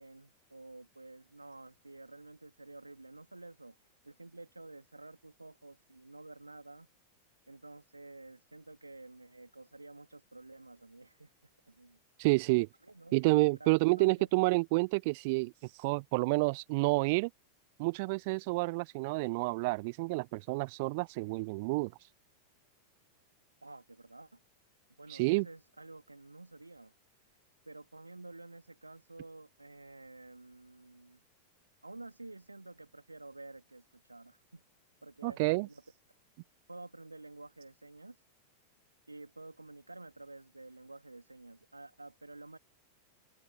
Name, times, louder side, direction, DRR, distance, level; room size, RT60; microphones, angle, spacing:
voice 1, 0.0-6.9 7.5-12.0 12.8-13.2 13.6-14.3 23.6-24.4 25.0-26.9 27.7-31.2 31.8-34.6 35.0-35.4 35.7-35.8 36.7-38.2 39.1-42.6, right 2 dB, 85° right, 2.7 m, -51 dB
voice 2, 12.2-12.7 13.1-15.5 15.8-17.3 17.8-21.9 25.1-25.5 35.2-35.7, right 26 dB, 50° right, 1.1 m, -29 dB
open air
figure-of-eight pair, 90°, 0 cm